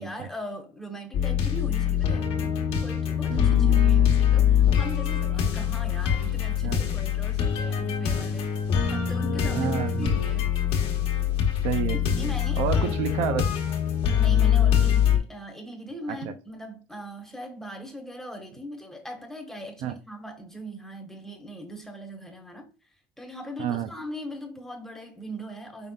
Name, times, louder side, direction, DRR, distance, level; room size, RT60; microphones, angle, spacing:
voice 1, 0.0-2.4 2.8-8.5 8.9-10.6 12.2-13.0 14.1-22.7 23.2-25.9, equal, 5° left, 1.3 m, -39 dB
sound 1, 1.1-15.2, left 9 dB, 65° left, 1.2 m, -23 dB
voice 2, 3.2-3.8 6.6-6.8 8.9-9.0 9.5-10.1 11.6-13.5 16.1-16.3 19.8-19.9 23.6-23.9, right 10 dB, 80° right, 0.6 m, -30 dB
5.7 x 3.6 x 2.4 m
cardioid pair, 100°, 11 cm